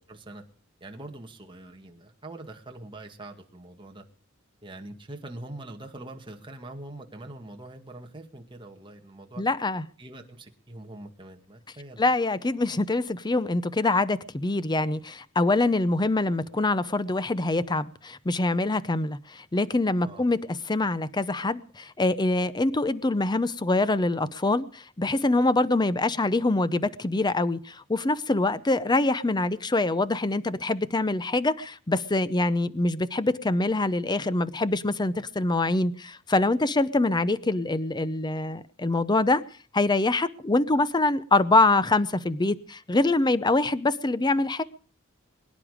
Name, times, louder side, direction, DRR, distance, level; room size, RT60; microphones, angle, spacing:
voice 1, 0.1-0.4 0.8-4.0 4.6-9.4 10.0-12.0 20.0-20.3, right 2 dB, 25° right, 2.0 m, -43 dB
voice 2, 9.4-9.9 12.0-39.4 39.7-44.6, left 2 dB, 20° left, 0.6 m, -25 dB
22.5 x 10.5 x 5.0 m
head